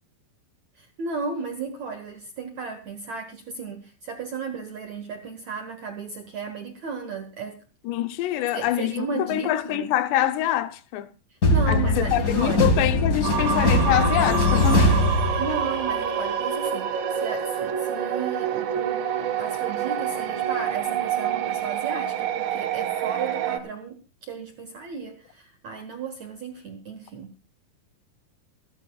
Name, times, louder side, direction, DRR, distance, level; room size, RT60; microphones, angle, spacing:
voice 1, 0.8-7.6 8.5-9.9 11.5-12.8 15.4-27.3, right 5 dB, 65° right, 1.8 m, -34 dB
voice 2, 7.9-11.1 11.7-15.0, left 13 dB, 80° left, 2.9 m, -25 dB
sound 1, 11.4-15.9, left 2 dB, 40° left, 1.2 m, -21 dB
sound 2, 13.2-23.6, right 8 dB, 80° right, 4.1 m, -27 dB
28.0 x 12.0 x 2.3 m
omnidirectional pair, 5.1 m